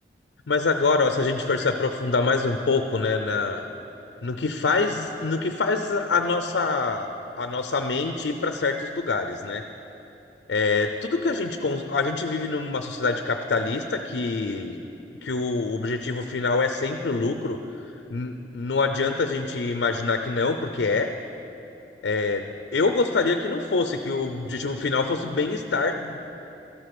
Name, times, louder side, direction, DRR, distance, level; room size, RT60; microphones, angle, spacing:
voice 1, 0.5-3.7 4.2-7.1 7.4-9.6 10.5-14.8 15.2-17.8 18.1-21.1 22.0-26.2, left 3 dB, 75° left, 7 dB, 0.5 m, -25 dB
13.5 x 8.1 x 6.0 m, 2.9 s
head